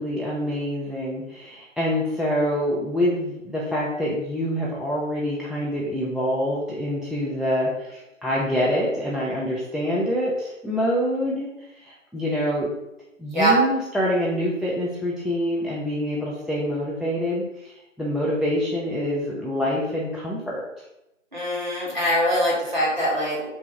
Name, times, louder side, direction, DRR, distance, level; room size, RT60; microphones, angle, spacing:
voice 1, 0.0-11.5 11.8-12.7 13.2-17.7 18.0-20.7, equal, ahead, -6 dB, 0.4 m, -26 dB
voice 2, 21.3-23.5, equal, 35° right, -6 dB, 1.5 m, -23 dB
3.4 x 3.0 x 4.6 m, 0.91 s
figure-of-eight pair, 175°, 39 cm